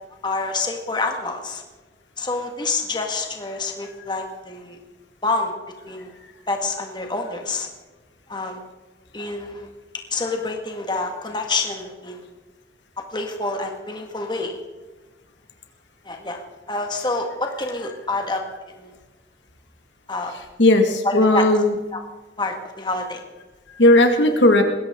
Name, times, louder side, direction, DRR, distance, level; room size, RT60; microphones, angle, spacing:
voice 1, 0.2-1.6 2.2-4.8 5.2-5.5 5.9-6.1 6.5-7.7 8.3-8.6 9.1-9.7 10.1-12.3 13.1-14.6 16.1-18.4 18.8-18.9 20.1-20.3 21.0-21.5 21.9-22.0 22.4-23.2, left 3 dB, 25° left, 3 dB, 1.8 m, -27 dB
voice 2, 20.6-21.7 23.8-24.6, left 1 dB, 85° left, 4 dB, 2.1 m, -15 dB
20.5 x 16.5 x 3.8 m, 1.2 s
head